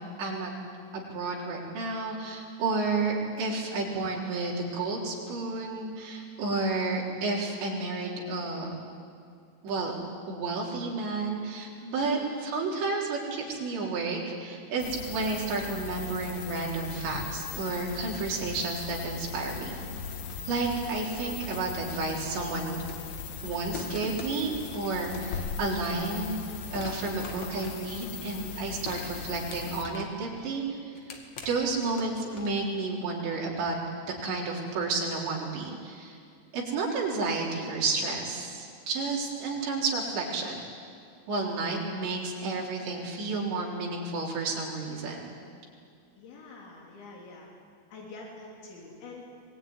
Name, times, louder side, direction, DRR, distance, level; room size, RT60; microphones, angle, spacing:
voice 1, 0.2-0.5 0.9-8.7 9.6-10.0 10.3-19.8 20.5-22.9 23.4-26.4 26.7-30.8 31.5-33.8 34.2-36.2 36.5-40.6 41.3-45.2, right 3 dB, 75° right, -3 dB, 6.2 m, -31 dB
voice 2, 11.9-12.3 46.2-47.5 47.9-49.3, left 3 dB, 85° left, -2 dB, 5.7 m, -46 dB
sound 1, 14.8-29.9, left 6 dB, 70° left, 1.7 m, -39 dB
sound 2, 22.9-23.2 23.7-25.6 26.1-26.4 26.7-28.4 28.9-30.3 30.7-32.7, left 4 dB, 50° left, 2.8 m, -44 dB
23.5 x 20.0 x 9.8 m, 2.3 s
omnidirectional pair, 5.1 m